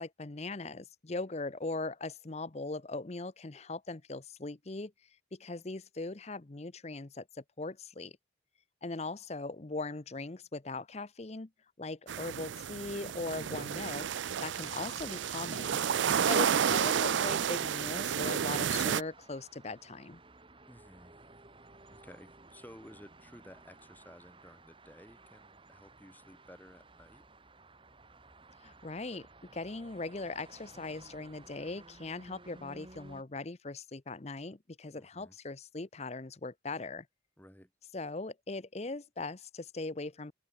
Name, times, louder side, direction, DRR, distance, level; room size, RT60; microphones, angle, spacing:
voice 1, 0.0-4.9 5.3-8.2 8.8-11.5 11.8-15.8 16.3-20.2 28.6-37.1 37.9-40.3, left 3 dB, 35° left, 0.8 m, -40 dB
sound 1, 12.1-19.0, right 8 dB, 80° right, 0.4 m, -31 dB
sound 2, 14.6-33.2, right 3 dB, 30° right, 3.6 m, -56 dB
voice 2, 20.7-21.2 21.9-27.3 35.0-35.4 37.4-37.7, left 1 dB, 10° left, 2.2 m, -55 dB
open air
head